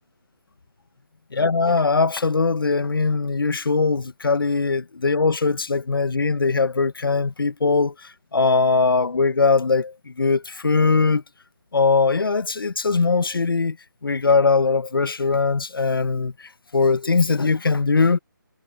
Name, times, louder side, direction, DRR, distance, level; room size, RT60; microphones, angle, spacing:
voice 1, 1.3-11.2 11.7-13.8 14.0-18.2, left 4 dB, 85° left, 1.0 m, -21 dB
hypercardioid pair, 175°, 11 cm